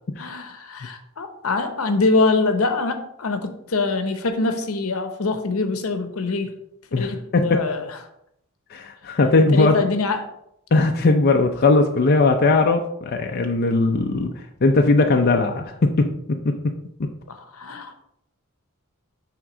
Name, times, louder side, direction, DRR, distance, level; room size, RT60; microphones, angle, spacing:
voice 1, 0.2-6.5 7.0-7.9 9.5-10.3 17.3-18.0, left 3 dB, 75° left, 7 dB, 0.9 m, -24 dB
voice 2, 6.9-7.6 8.7-9.8 10.7-16.7 17.0-17.1, left 3 dB, 45° left, 3 dB, 0.5 m, -19 dB
6.1 x 3.6 x 6.0 m, 0.76 s
head